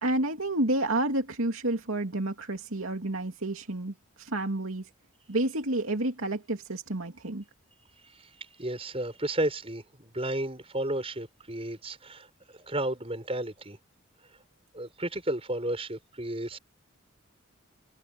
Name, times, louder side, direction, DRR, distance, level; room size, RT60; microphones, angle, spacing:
voice 1, 0.0-4.9 5.3-7.4, right 1 dB, 80° right, 2.6 m, -30 dB
voice 2, 8.6-12.3 12.7-13.8 14.7-16.6, right 1 dB, 25° right, 6.0 m, -32 dB
head